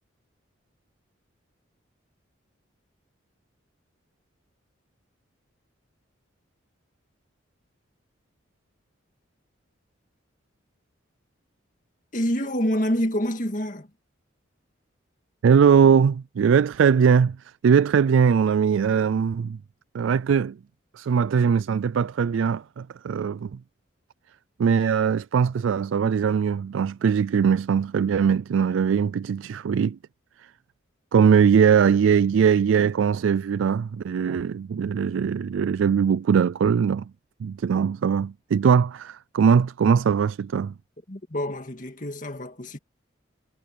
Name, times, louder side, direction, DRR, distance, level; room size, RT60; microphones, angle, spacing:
voice 1, 12.1-13.9 41.1-42.8, equal, 40° left, 2.1 m, -27 dB
voice 2, 15.4-17.4 17.6-19.6 19.9-20.6 21.0-23.6 24.6-30.0 31.1-37.1 37.4-40.7, right 7 dB, 80° right, 0.3 m, -21 dB
head